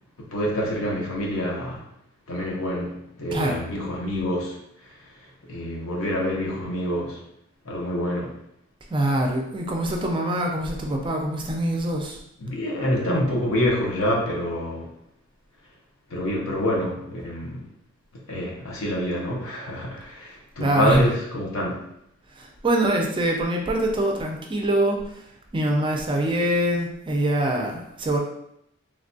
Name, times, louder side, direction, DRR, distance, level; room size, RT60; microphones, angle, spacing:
voice 1, 0.2-1.8 2.3-4.6 5.5-7.2 7.6-8.3 12.4-14.9 16.1-17.6 18.3-21.8, equal, 75° left, -1 dB, 0.7 m, -26 dB
voice 2, 8.9-12.2 20.6-21.0 22.4-25.0 25.5-28.2, right 1 dB, 25° right, 1 dB, 0.4 m, -24 dB
3.2 x 2.2 x 2.6 m, 0.76 s
head